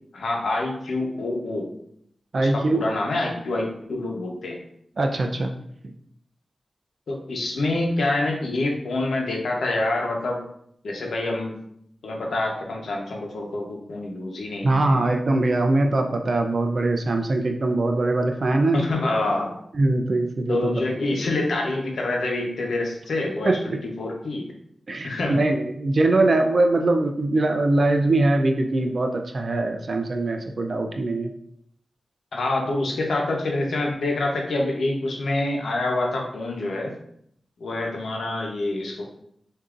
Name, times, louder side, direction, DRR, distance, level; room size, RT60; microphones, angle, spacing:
voice 1, 0.1-1.7 2.4-4.6 7.1-10.4 10.8-11.5 12.0-15.0 18.7-19.5 20.5-24.5 25.0-25.4 26.2-26.3 32.3-36.9 37.6-39.1, left 2 dB, 90° left, 0 dB, 0.9 m, -26 dB
voice 2, 2.3-2.9 5.0-5.5 14.6-18.8 19.7-20.7 23.5-23.6 24.9-31.3, right 2 dB, 50° right, 4 dB, 0.4 m, -22 dB
6.6 x 2.7 x 2.5 m, 0.70 s
wide cardioid pair, 120°, 0 cm